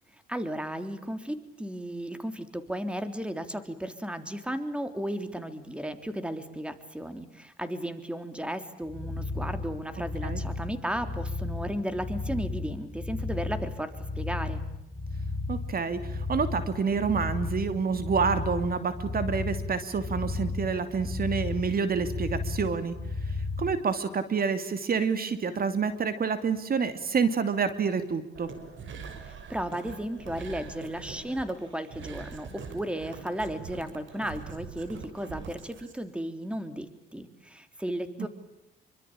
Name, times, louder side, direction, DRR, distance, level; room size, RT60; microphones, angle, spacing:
voice 1, 0.3-14.6 29.2-38.3, equal, 5° right, 10 dB, 3.4 m, -34 dB
sound 1, 8.8-23.8, left 3 dB, 20° left, 4.6 m, -34 dB
voice 2, 15.5-22.9 23.6-28.5 38.2-38.3, right 5 dB, 50° right, 11 dB, 2.8 m, -28 dB
sound 2, 28.3-35.9, right 5 dB, 70° right, 6.1 m, -43 dB
27.5 x 25.0 x 8.8 m, 0.86 s
cardioid pair, 90°, 20 cm